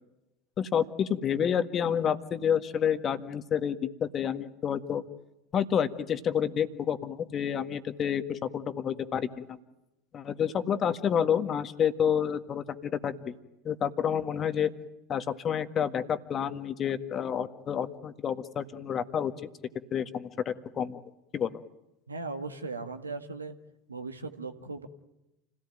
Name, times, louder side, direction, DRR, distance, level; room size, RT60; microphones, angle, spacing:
voice 1, 0.6-5.0 5.5-9.6 10.1-13.3 13.7-14.7 15.1-19.3 19.9-21.0 21.3-21.6, left 8 dB, 35° left, 10 dB, 1.7 m, -29 dB
voice 2, 22.1-23.6 23.9-24.9, right 3 dB, 85° right, 7 dB, 1.8 m, -38 dB
29.0 x 17.5 x 9.2 m, 0.93 s
figure-of-eight pair, 75°, 0 cm